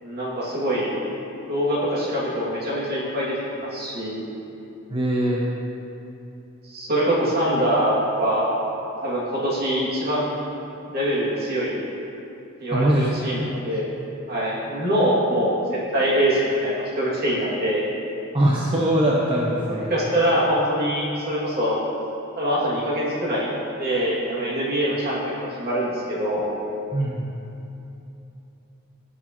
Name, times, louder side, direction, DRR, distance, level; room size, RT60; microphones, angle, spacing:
voice 1, 0.0-0.9 1.5-4.2 6.6-8.5 9.0-10.3 10.9-11.8 12.6-13.9 14.3-17.8 19.9-21.8 22.4-23.5 23.8-26.5, equal, 50° right, -6 dB, 2.4 m, -24 dB
voice 2, 4.9-5.4 12.7-13.3 18.3-19.9 26.9-27.3, right 1 dB, 25° right, -4 dB, 0.8 m, -21 dB
17.5 x 6.4 x 3.0 m, 2.9 s
head